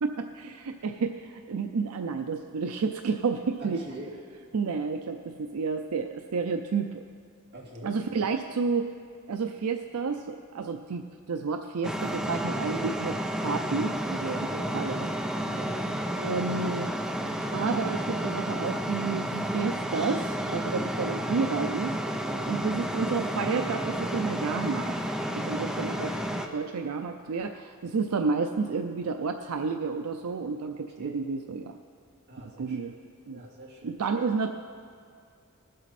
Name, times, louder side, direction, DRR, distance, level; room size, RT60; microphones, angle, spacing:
voice 1, 0.0-3.8 4.5-7.0 7.8-8.9 9.3-14.5 14.7-15.1 16.1-16.9 17.5-22.0 22.5-24.9 25.3-26.2 26.5-31.7 32.6-32.9 33.3-33.4 33.8-34.5, right 4 dB, 85° right, 6 dB, 0.5 m, -30 dB
voice 2, 3.6-4.1 7.5-8.0 14.2-15.1 15.5-15.9 22.2-22.6 31.0-31.2 32.3-32.9 33.3-33.9, right 1 dB, 50° right, -4 dB, 2.5 m, -43 dB
sound 1, 11.8-26.5, equal, ahead, 0.6 m, -31 dB
20.0 x 7.6 x 4.2 m, 2.2 s
head